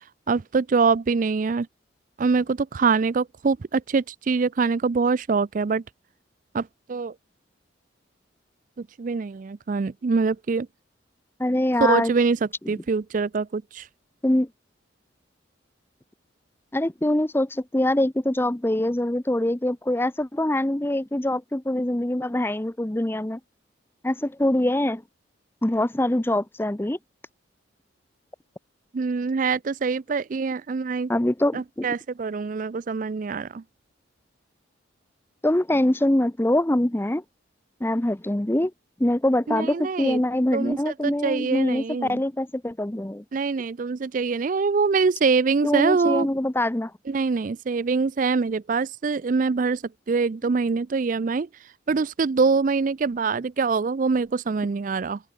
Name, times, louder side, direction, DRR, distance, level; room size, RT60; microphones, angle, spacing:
voice 1, 0.3-1.7 2.2-5.8 6.5-7.1 8.8-10.7 11.8-13.9 28.9-31.1 31.5-33.6 39.5-40.2 40.5-42.2 43.3-46.3 47.1-49.8 50.1-51.5 51.9-55.2, right 4 dB, 45° right, 0.4 m, -24 dB
voice 2, 11.4-12.1 14.2-14.5 16.7-23.4 24.0-25.0 25.6-27.0 31.1-31.9 35.4-37.2 37.8-38.7 39.0-43.2 45.6-46.9, left 1 dB, 10° left, 0.6 m, -24 dB
open air
head